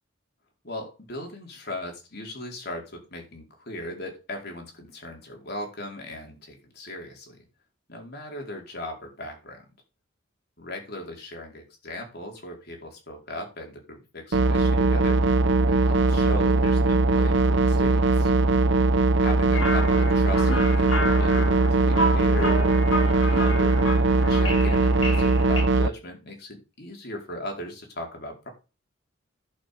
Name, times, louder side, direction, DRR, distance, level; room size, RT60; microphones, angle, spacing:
voice 1, 0.6-7.4 7.9-9.6 10.6-15.2 15.6-18.3 19.2-21.3 21.9-23.8 24.2-28.5, left 1 dB, 55° left, 1 dB, 4.6 m, -38 dB
sound 1, 14.3-25.9, right 2 dB, 65° right, 0.7 m, -20 dB
sound 2, 19.5-25.6, equal, 80° left, 3.5 m, -31 dB
11.0 x 6.1 x 6.8 m, 0.31 s
head